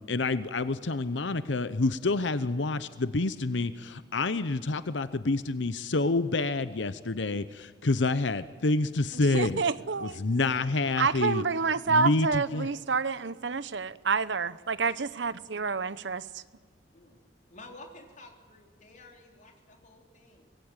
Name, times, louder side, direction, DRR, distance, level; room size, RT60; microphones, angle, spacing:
voice 1, 0.0-9.6 10.0-11.4 11.9-12.7, left 3 dB, 75° left, 13 dB, 0.8 m, -28 dB
voice 2, 9.3-10.2 11.0-16.2, right 5 dB, 75° right, 16 dB, 0.8 m, -28 dB
voice 3, 15.6-15.9 16.9-17.2 17.5-20.5, left 2 dB, 40° left, 2 dB, 3.8 m, -51 dB
25.0 x 20.5 x 9.0 m, 1.5 s
head